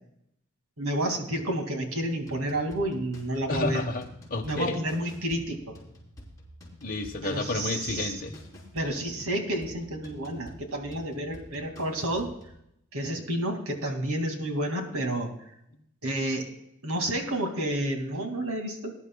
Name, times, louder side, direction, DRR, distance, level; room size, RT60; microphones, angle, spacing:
voice 1, 0.8-3.8 4.4-5.6 7.2-8.2 8.7-12.3 12.9-15.3 16.0-16.5 16.8-18.9, right 1 dB, 90° right, 3 dB, 2.4 m, -30 dB
sound 1, 2.2-12.6, equal, 15° left, 3.6 m, -49 dB
voice 2, 3.5-4.8 6.8-8.4, left 2 dB, 40° left, 1 dB, 1.2 m, -31 dB
20.5 x 11.0 x 2.3 m, 0.76 s
head